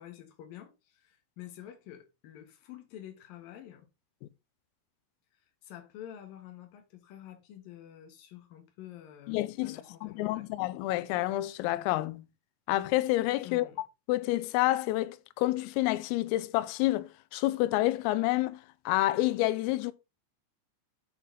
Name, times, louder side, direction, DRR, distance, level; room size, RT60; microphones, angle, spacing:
voice 1, 0.0-3.9 5.6-10.5 13.4-13.8, left 11 dB, 65° left, 2.4 m, -48 dB
voice 2, 9.3-12.2 12.7-13.7 14.1-18.6 18.9-19.9, left 17 dB, 90° left, 3.3 m, -28 dB
8.9 x 6.0 x 3.9 m
omnidirectional pair, 5.9 m